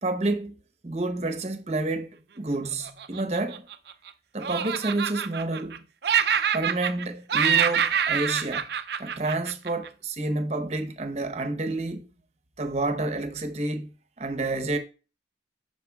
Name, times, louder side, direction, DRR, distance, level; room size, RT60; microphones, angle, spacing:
voice 1, 0.0-3.7 4.3-5.8 6.5-8.7 9.0-12.1 12.6-13.9 14.2-14.8, right 2 dB, 35° right, 0.8 m, -29 dB
Laughter, 2.8-4.1 4.4-5.8 6.0-7.0 7.3-9.9, right 8 dB, 60° right, 0.4 m, -26 dB
12.5 x 4.6 x 2.3 m
head